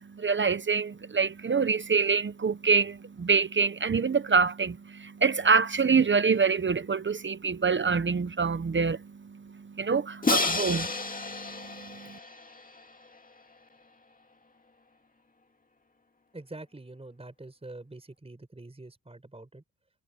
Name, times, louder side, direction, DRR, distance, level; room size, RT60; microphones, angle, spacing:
voice 1, 0.0-12.2, right 5 dB, 30° right, 1.0 m, -26 dB
Crash cymbal, 10.2-13.2, left 3 dB, 20° left, 2.3 m, -30 dB
voice 2, 16.3-19.6, right 2 dB, 15° right, 5.4 m, -45 dB
cardioid pair, 90°, 37 cm